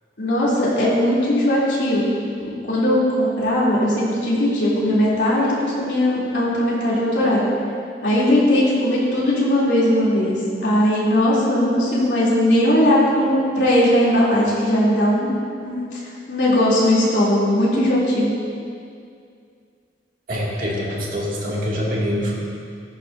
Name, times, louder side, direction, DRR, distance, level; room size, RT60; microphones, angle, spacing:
voice 1, 0.2-2.1 2.4-7.4 8.0-15.3 15.6-15.8 16.3-18.3, left 1 dB, 90° left, -7 dB, 3.1 m, -19 dB
voice 2, 20.3-22.3, equal, 50° right, -5 dB, 2.4 m, -24 dB
15.0 x 11.5 x 2.7 m, 2.3 s
head